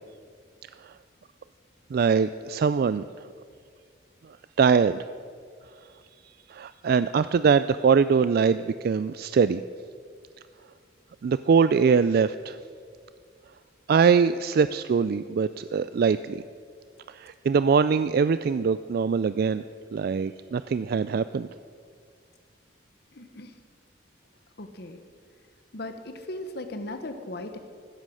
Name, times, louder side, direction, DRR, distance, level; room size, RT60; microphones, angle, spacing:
voice 1, 1.9-3.1 4.6-5.0 6.5-9.6 11.2-12.6 13.9-16.4 17.1-19.6 19.9-21.5, right 5 dB, 55° right, 14 dB, 0.3 m, -22 dB
voice 2, 23.1-23.5 24.6-25.0 25.7-27.6, left 1 dB, 60° left, 7 dB, 1.1 m, -37 dB
15.5 x 13.0 x 6.3 m, 2.1 s
head